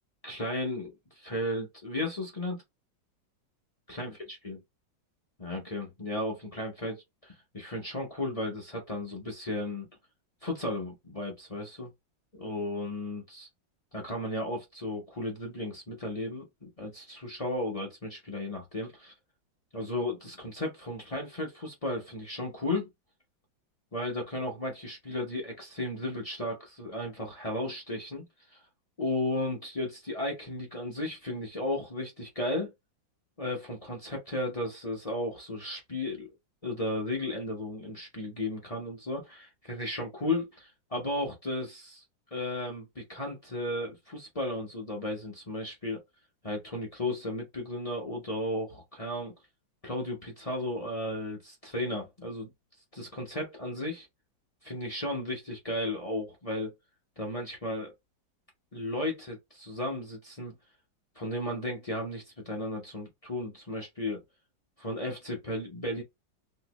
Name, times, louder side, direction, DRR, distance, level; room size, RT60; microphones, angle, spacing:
voice 1, 0.2-2.6 3.9-4.6 5.4-9.9 10.4-11.9 12.3-13.5 13.9-19.1 19.7-22.9 23.9-28.6 29.0-32.7 33.4-36.3 36.6-42.0 42.3-46.0 46.4-49.3 49.8-52.5 52.9-54.1 54.6-56.7 57.2-57.9 58.7-60.5 61.2-64.2 64.8-66.0, left 1 dB, 45° left, 0.4 m, -34 dB
3.2 x 2.7 x 2.9 m
omnidirectional pair, 2.0 m